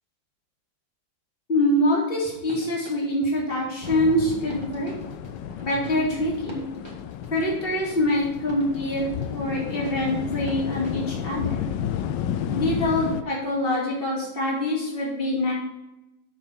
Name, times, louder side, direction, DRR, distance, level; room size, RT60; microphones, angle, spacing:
voice 1, 1.5-4.9 5.6-6.6 7.3-11.7 12.5-15.5, left 1 dB, 25° left, -4 dB, 2.7 m, -25 dB
sound 1, 2.2-11.1, right 1 dB, 15° right, 1.7 m, -45 dB
sound 2, 3.8-13.2, left 9 dB, 75° left, 1.0 m, -32 dB
6.9 x 6.8 x 5.9 m, 0.92 s
omnidirectional pair, 2.4 m